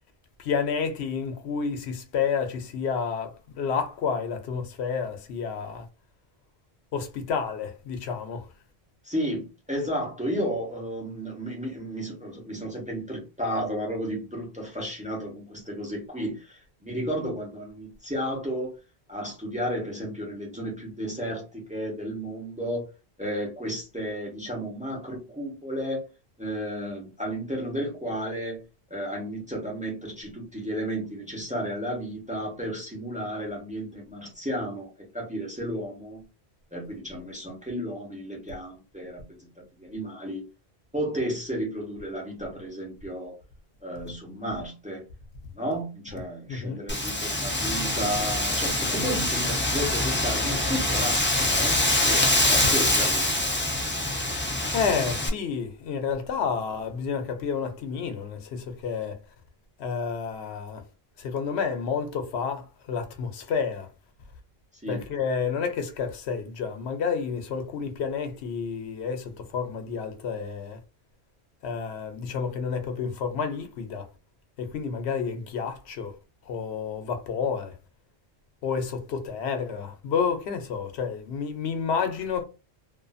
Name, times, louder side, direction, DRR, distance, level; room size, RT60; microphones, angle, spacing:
voice 1, 0.4-5.9 6.9-8.5 46.5-46.8 54.7-59.2 59.8-60.8 61.2-63.9 64.9-70.8 71.6-74.1 74.6-76.1 76.5-77.7 78.6-82.4, left 6 dB, 90° left, 0.9 m, -30 dB
voice 2, 9.0-18.8 19.1-22.8 23.2-26.0 26.4-28.6 28.9-36.3 36.7-39.5 39.8-40.4 40.9-43.4 43.8-45.0 45.5-51.8 52.0-53.3 64.8-65.0, equal, 10° right, 0.8 m, -33 dB
Wind, 46.9-55.3, left 1 dB, 20° left, 0.3 m, -25 dB
2.5 x 2.5 x 2.3 m
omnidirectional pair, 1.1 m